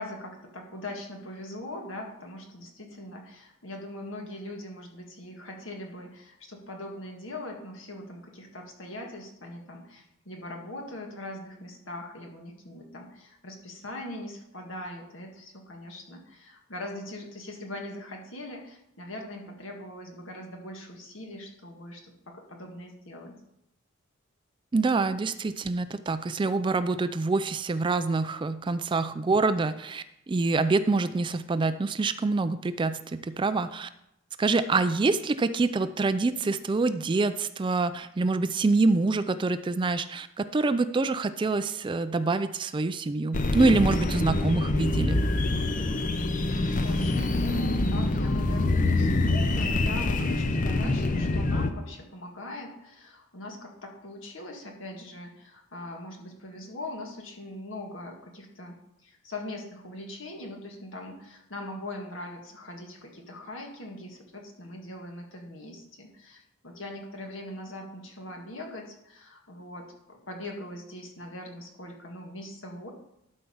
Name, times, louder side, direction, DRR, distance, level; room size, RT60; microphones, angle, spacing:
voice 1, 0.0-23.4 46.7-72.9, left 1 dB, 70° left, 1 dB, 1.8 m, -41 dB
voice 2, 24.7-33.9 34.4-45.2, right 3 dB, 25° right, 12 dB, 0.3 m, -26 dB
Alien Sci Fi Ambient, 43.3-51.7, left 2 dB, 40° left, 0.6 m, -25 dB
12.0 x 4.6 x 5.5 m, 0.81 s
head